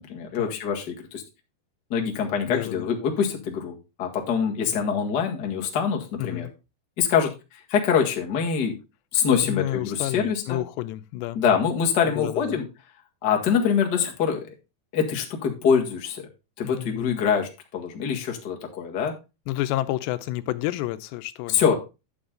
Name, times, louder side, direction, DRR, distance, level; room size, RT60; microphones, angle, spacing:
voice 1, 0.1-1.2 1.9-6.5 7.0-8.7 9.1-10.6 11.3-12.6 13.2-14.5 14.9-16.2 16.6-19.1 21.5-21.8, left 7 dB, 45° left, 1.3 m, -24 dB
voice 2, 2.5-2.9 6.2-6.5 9.4-11.4 12.1-12.6 16.6-17.2 19.5-21.6, left 16 dB, 90° left, 2.8 m, -30 dB
11.0 x 7.1 x 3.7 m
omnidirectional pair, 4.9 m